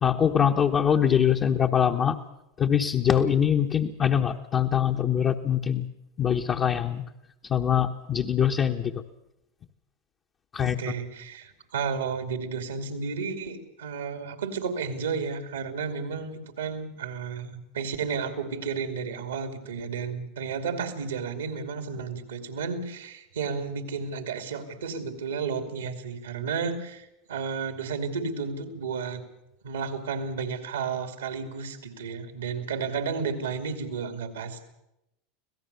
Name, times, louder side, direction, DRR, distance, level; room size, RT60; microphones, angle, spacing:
voice 1, 0.0-2.1 2.6-5.9 6.2-7.0 7.5-8.9 10.5-10.7, left 8 dB, 35° left, 2 dB, 1.2 m, -23 dB
voice 2, 10.6-29.2 29.6-34.7, right 5 dB, 90° right, 8 dB, 2.6 m, -32 dB
25.5 x 17.0 x 6.9 m, 0.88 s
hypercardioid pair, 95°, 0 cm